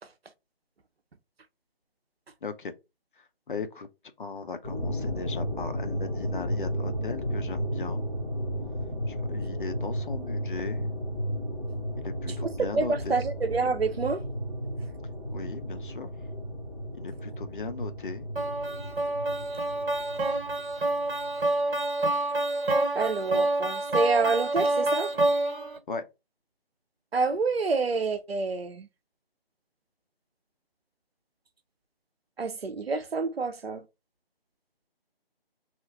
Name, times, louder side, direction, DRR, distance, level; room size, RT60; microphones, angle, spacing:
voice 1, 2.4-2.7 3.5-3.9 4.2-8.1 9.1-11.0 12.0-13.2 15.3-16.1 17.0-18.3 25.9-26.0, left 4 dB, 55° left, 0.6 m, -37 dB
sound 1, 4.6-21.4, equal, 15° left, 1.0 m, -33 dB
voice 2, 12.4-14.2 22.9-25.1 27.1-28.9 32.4-33.8, right 4 dB, 85° right, 0.7 m, -27 dB
sound 2, 18.4-25.8, right 2 dB, 65° right, 1.3 m, -27 dB
2.8 x 2.4 x 3.6 m
figure-of-eight pair, 160°, 30 cm